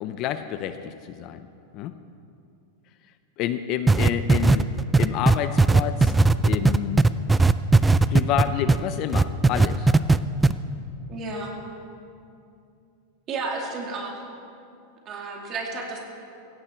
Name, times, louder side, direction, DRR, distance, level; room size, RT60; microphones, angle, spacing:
voice 1, 0.0-1.5 1.7-1.9 3.4-4.7 5.0-6.1 6.4-7.0 8.1-9.9, left 10 dB, 40° left, 10 dB, 0.6 m, -29 dB
sound 1, 3.9-8.8 9.1-10.2 10.4-10.5, right 3 dB, 10° right, 0.3 m, -17 dB
voice 2, 11.1-11.5 13.3-14.2 15.1-16.0, right 3 dB, 30° right, 0 dB, 2.6 m, -32 dB
17.0 x 16.0 x 4.5 m, 2.5 s
supercardioid pair, 160°, 0 cm